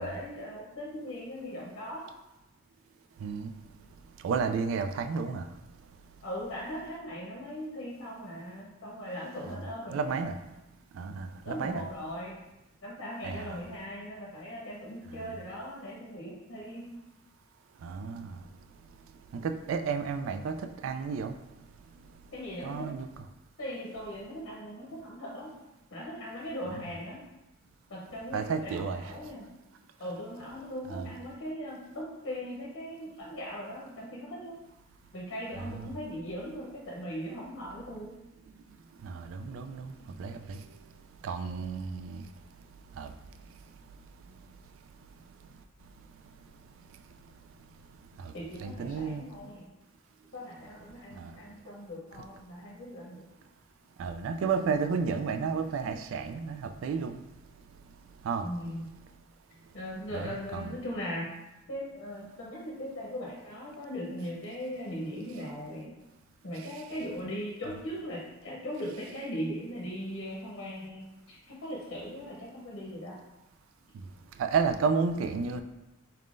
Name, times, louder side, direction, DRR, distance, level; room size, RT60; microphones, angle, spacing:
voice 1, 0.0-2.1 6.2-10.2 11.4-12.4 12.8-16.9 22.3-22.9 23.6-25.5 25.9-27.2 27.9-29.5 30.0-34.6 35.1-38.1 48.3-49.7 50.3-53.3 58.4-58.8 59.7-61.3 61.7-66.0 66.4-73.2, equal, 70° left, -5 dB, 0.8 m, -39 dB
voice 2, 4.2-5.4 9.9-10.3 11.0-11.8 13.2-13.6 17.8-18.4 19.3-20.5 20.8-21.3 22.6-23.1 28.3-29.1 30.9-31.1 35.6-35.9 39.0-39.9 40.2-40.6 41.2-42.2 43.0-43.1 48.2-48.3 48.6-49.2 51.2-51.3 54.0-57.2 58.2-58.4 60.1-60.7 74.4-75.6, right 5 dB, 80° right, 8 dB, 0.3 m, -32 dB
4.3 x 3.6 x 2.5 m, 1.0 s
head